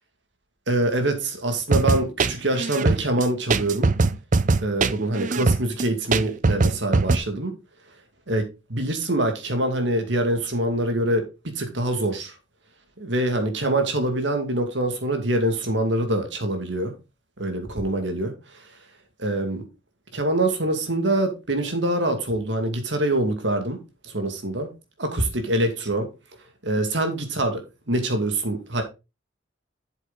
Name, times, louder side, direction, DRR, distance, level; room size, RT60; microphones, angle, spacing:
voice 1, 0.7-3.9 4.6-7.5 8.3-12.4 13.0-16.9 17.4-18.3 19.2-19.6 20.1-23.8 24.0-24.7 25.0-26.1 26.6-28.8, right 1 dB, 65° right, 2.3 m, -25 dB
sound 1, 1.7-7.2, right 3 dB, 40° right, 0.5 m, -21 dB
8.2 x 7.3 x 4.0 m
head